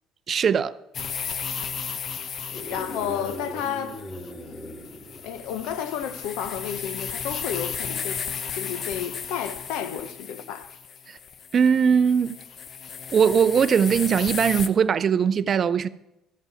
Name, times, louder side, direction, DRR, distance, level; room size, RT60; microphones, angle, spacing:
voice 1, 0.3-0.7 11.1-11.2 11.5-12.4 13.1-15.9, right 7 dB, 45° right, 0.4 m, -20 dB
sound 1, 0.9-14.7, left 7 dB, 50° left, 0.8 m, -35 dB
sound 2, 2.4-6.1, equal, 25° left, 1.6 m, -40 dB
voice 2, 2.5-4.7 5.2-8.2 8.5-10.7, left 9 dB, 80° left, 0.8 m, -32 dB
13.0 x 5.5 x 7.0 m
supercardioid pair, 90°, 0 cm